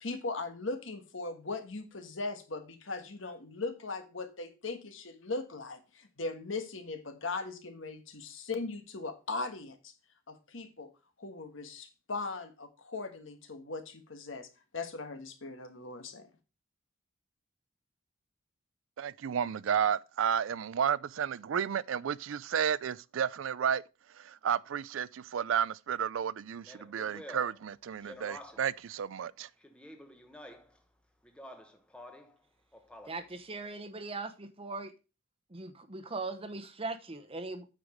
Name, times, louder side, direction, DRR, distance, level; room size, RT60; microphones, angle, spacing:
voice 1, 0.0-9.9 10.3-10.9 11.2-14.5 14.7-16.3, left 3 dB, 70° left, 1.4 m, -39 dB
voice 2, 19.0-23.8 24.1-29.5, right 8 dB, 70° right, 0.4 m, -32 dB
Speech, 26.6-28.8 29.6-30.8 31.2-32.3 32.7-33.4, equal, 5° left, 1.0 m, -50 dB
voice 3, 33.1-34.9 35.5-37.6, right 3 dB, 30° right, 0.9 m, -39 dB
9.0 x 4.9 x 5.0 m
head